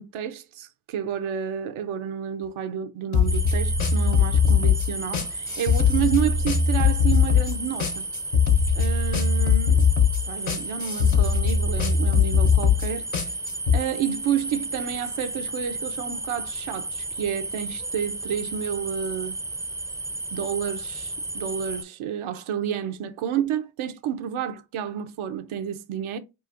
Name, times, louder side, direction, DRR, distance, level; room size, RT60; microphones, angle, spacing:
voice 1, 0.0-8.1 8.8-9.9 10.3-13.0 13.7-19.4 20.3-26.2, right 9 dB, 85° right, 0.6 m, -30 dB
sound 1, 3.1-13.8, left 6 dB, 80° left, 0.8 m, -21 dB
sound 2, 3.3-21.8, right 2 dB, 5° right, 0.4 m, -33 dB
5.0 x 2.4 x 2.4 m
supercardioid pair, 45°, 48 cm